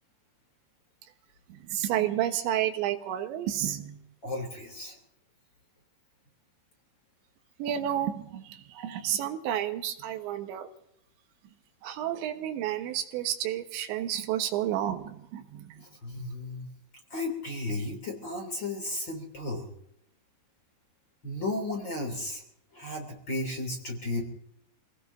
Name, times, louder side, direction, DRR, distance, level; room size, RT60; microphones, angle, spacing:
voice 1, 1.5-4.0 7.6-10.7 11.8-15.8, right 11 dB, 90° right, 6 dB, 3.5 m, -31 dB
voice 2, 4.2-5.0 15.8-16.7 17.1-19.7 21.2-22.4 22.7-24.2, left 2 dB, 30° left, 2 dB, 3.0 m, -34 dB
28.0 x 18.5 x 2.7 m, 0.76 s
omnidirectional pair, 5.1 m